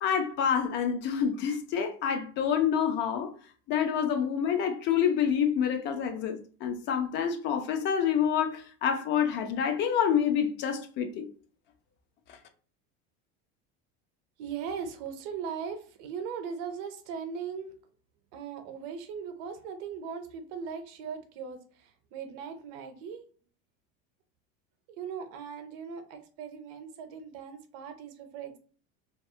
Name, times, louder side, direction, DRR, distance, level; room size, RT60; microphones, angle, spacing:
voice 1, 0.0-3.3 3.7-11.3, left 8 dB, 40° left, 0.4 m, -27 dB
voice 2, 14.4-17.7 18.3-23.2 24.9-28.6, right 6 dB, 60° right, 0.6 m, -39 dB
2.3 x 2.3 x 2.7 m
cardioid pair, 150°, 30 cm